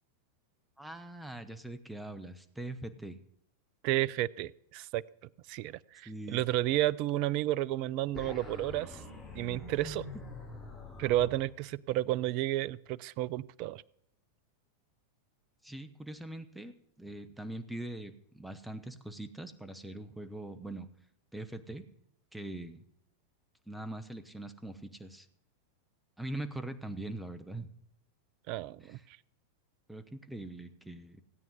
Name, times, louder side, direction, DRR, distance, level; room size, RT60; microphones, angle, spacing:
voice 1, 0.8-3.2 6.0-6.4 15.6-20.9 21.3-21.8 22.3-22.8 23.7-25.3 26.2-27.7 28.8-29.0 29.9-31.2, right 1 dB, 5° right, 10 dB, 1.2 m, -42 dB
voice 2, 3.8-5.0 5.5-9.0 9.3-10.0 11.0-13.8 28.5-29.0, right 15 dB, 45° right, 22 dB, 0.4 m, -31 dB
sound 1, 8.1-11.4, left 3 dB, 10° left, 4.8 m, -45 dB
16.5 x 9.1 x 5.5 m, 0.74 s
figure-of-eight pair, 90°, 0 cm